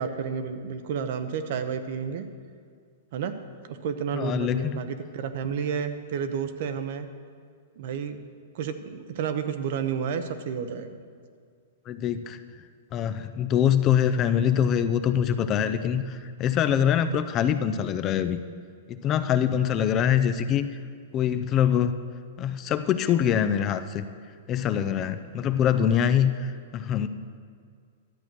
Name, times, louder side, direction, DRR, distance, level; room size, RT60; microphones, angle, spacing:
voice 1, 0.0-2.3 3.1-3.3 3.7-7.1 7.8-8.2 8.5-11.0, right 7 dB, 55° right, 9 dB, 0.8 m, -31 dB
voice 2, 4.1-4.8 11.9-12.4 12.9-18.4 18.9-20.7 21.1-22.0 22.4-24.1 24.5-27.1, left 9 dB, 30° left, 10 dB, 0.5 m, -24 dB
12.0 x 7.8 x 6.1 m, 2.1 s
hypercardioid pair, 145°, 0 cm